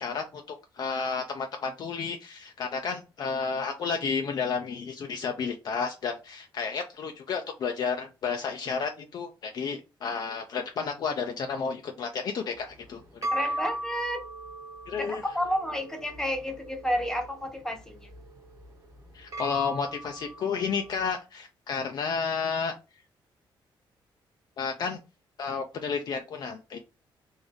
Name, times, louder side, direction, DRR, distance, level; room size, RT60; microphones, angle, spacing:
voice 1, 0.0-13.0 14.9-15.2 19.1-22.7 24.6-25.0 25.4-26.8, left 5 dB, 50° left, 5 dB, 0.4 m, -31 dB
sound 1, 12.6-21.1, right 1 dB, 40° right, 1.1 m, -38 dB
voice 2, 13.3-14.2 15.0-18.1, equal, 5° left, 5 dB, 0.7 m, -31 dB
3.5 x 2.6 x 3.5 m, 0.29 s
cardioid pair, 150°, 9 cm